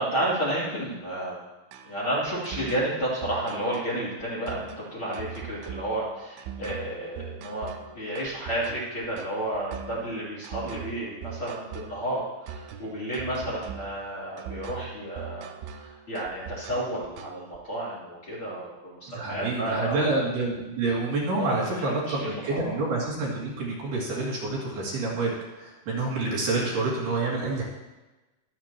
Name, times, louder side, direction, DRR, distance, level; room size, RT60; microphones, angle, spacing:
voice 1, 0.0-1.4 1.8-20.1 21.3-22.8, right 1 dB, 30° left, -8 dB, 3.4 m, -31 dB
sound 1, 1.7-17.6, right 8 dB, 90° right, 3.2 m, -41 dB
voice 2, 19.1-27.6, right 3 dB, 60° right, -5 dB, 4.2 m, -28 dB
23.5 x 8.7 x 3.0 m, 1.1 s
omnidirectional pair, 5.5 m